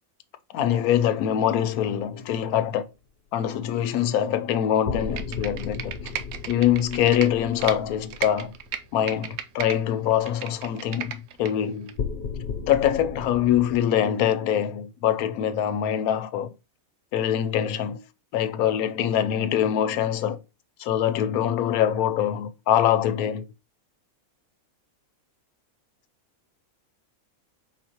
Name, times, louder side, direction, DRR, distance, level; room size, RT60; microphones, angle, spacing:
voice 1, 0.5-2.9 3.3-5.9 6.5-8.5 8.9-12.0 12.7-16.5 17.1-18.0 18.3-20.4 20.8-23.4, left 10 dB, 90° left, 1.1 m, -24 dB
sound 1, 4.8-9.1 12.0-13.8, left 6 dB, 55° left, 0.7 m, -35 dB
Computer keyboard, 5.0-7.8 8.1-9.8 10.1-11.5 11.9-12.0, right 9 dB, 65° right, 0.7 m, -34 dB
5.0 x 3.7 x 2.8 m
omnidirectional pair, 1.5 m